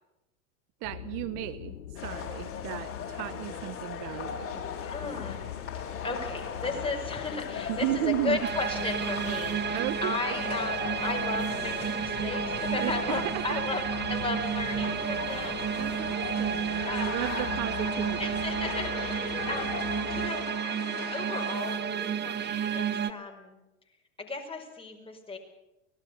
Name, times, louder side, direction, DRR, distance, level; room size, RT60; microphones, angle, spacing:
sound 1, 0.8-20.3, left 11 dB, 70° left, 1.7 m, -43 dB
voice 1, 0.8-4.6 7.7-8.4 9.7-10.2 12.8-13.6 15.8-18.3, right 16 dB, 50° right, 14 dB, 1.0 m, -34 dB
sound 2, 2.0-21.8, left 6 dB, 35° left, 4.7 m, -39 dB
voice 2, 4.9-5.5 6.0-16.1 16.8-17.5 18.2-23.6 24.2-25.4, left 3 dB, 15° left, 2 dB, 5.5 m, -36 dB
sound 3, 8.4-23.1, right 8 dB, 25° right, 1.2 m, -32 dB
24.5 x 18.0 x 7.0 m, 0.98 s
hypercardioid pair, 85°, 40 cm